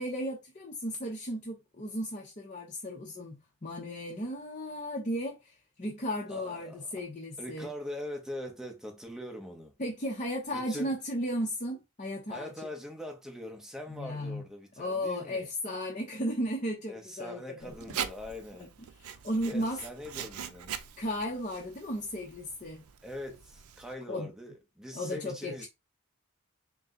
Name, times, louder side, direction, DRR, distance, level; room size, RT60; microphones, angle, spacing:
voice 1, 0.0-7.7 9.8-12.7 13.9-14.4 14.8-17.7 19.0-19.8 21.0-22.8 24.1-24.3 24.9-25.7, equal, 35° left, 0.8 m, -35 dB
voice 2, 6.3-7.0 7.4-9.7 10.5-11.0 12.3-15.5 16.9-18.7 19.4-20.7 23.0-25.7, left 1 dB, 5° right, 0.9 m, -42 dB
Writing, 17.6-23.9, right 8 dB, 75° right, 0.5 m, -42 dB
4.3 x 2.2 x 3.7 m
head